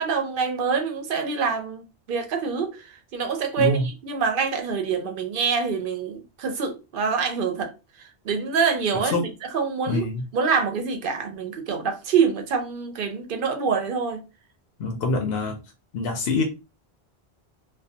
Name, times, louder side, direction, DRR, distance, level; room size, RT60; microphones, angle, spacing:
voice 1, 0.0-7.7 8.0-10.1 10.3-14.2, right 5 dB, 60° right, 0.7 m, -26 dB
voice 2, 3.6-3.9 9.1-9.2 9.9-10.2 14.8-15.6 15.9-16.4, left 3 dB, 70° left, 0.8 m, -25 dB
2.3 x 2.2 x 2.6 m
omnidirectional pair, 1.1 m